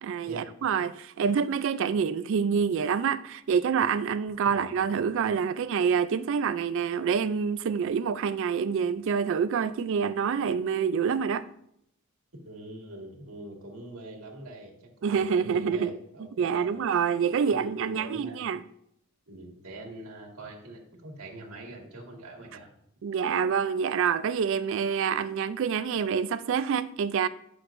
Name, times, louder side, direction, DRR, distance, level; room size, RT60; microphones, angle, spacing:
voice 1, 0.0-11.5 15.0-18.6 23.0-27.3, right 6 dB, 60° right, 0.3 m, -27 dB
voice 2, 12.4-16.8 17.3-18.4 19.3-22.7, right 1 dB, 85° right, 1.8 m, -43 dB
9.8 x 6.3 x 2.6 m
head